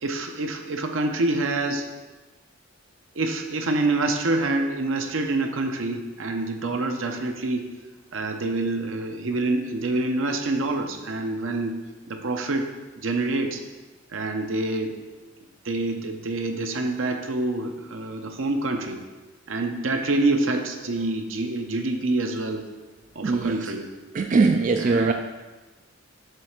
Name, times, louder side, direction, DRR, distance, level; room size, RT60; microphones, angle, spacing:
voice 1, 0.0-1.9 3.1-7.7 8.1-11.8 12.1-13.6 14.1-15.0 15.6-19.0 19.5-22.7 23.1-23.8 24.8-25.1, right 2 dB, 75° right, 4 dB, 0.8 m, -26 dB
voice 2, 23.2-23.7 24.1-25.1, right 4 dB, 40° right, 4 dB, 0.3 m, -21 dB
7.6 x 3.4 x 6.4 m, 1.2 s
head